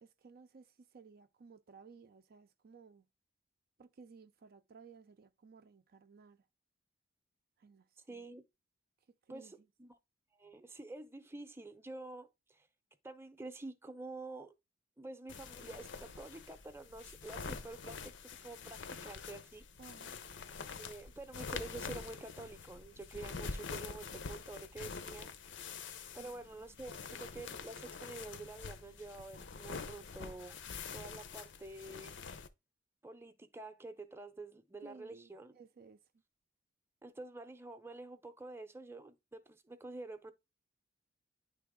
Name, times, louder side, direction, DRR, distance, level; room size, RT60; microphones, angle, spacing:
voice 1, 0.0-3.1 3.8-6.5 7.6-8.3 9.1-9.7 19.8-20.2 23.1-23.2 26.2-26.3 34.8-36.0, right 5 dB, 55° right, 0.5 m, -58 dB
voice 2, 8.1-8.4 9.3-9.5 9.8-10.0 10.4-12.7 13.0-14.5 15.0-19.7 20.8-25.4 26.1-30.6 30.9-32.2 33.0-35.5 37.0-40.3, right 2 dB, 15° right, 0.7 m, -48 dB
sound 1, 15.3-32.5, left 5 dB, 75° left, 0.7 m, -46 dB
9.3 x 3.4 x 3.6 m
head